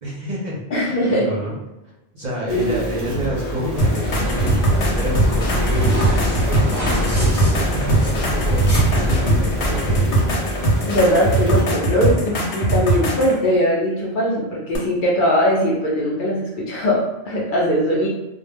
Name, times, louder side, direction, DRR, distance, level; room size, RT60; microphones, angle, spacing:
voice 1, 0.0-1.5 2.1-10.3, equal, 50° right, -4 dB, 0.6 m, -29 dB
voice 2, 0.7-1.3 2.5-2.8 10.8-18.1, equal, 55° left, -4 dB, 0.7 m, -20 dB
sound 1, 2.5-11.6, equal, 10° right, 0.7 m, -29 dB
sound 2, 3.8-13.4 14.7-14.8, right 1 dB, 90° left, 1.0 m, -21 dB
sound 3, 4.0-10.0, left 1 dB, 20° left, 0.5 m, -24 dB
2.2 x 2.1 x 3.3 m, 0.97 s
omnidirectional pair, 1.2 m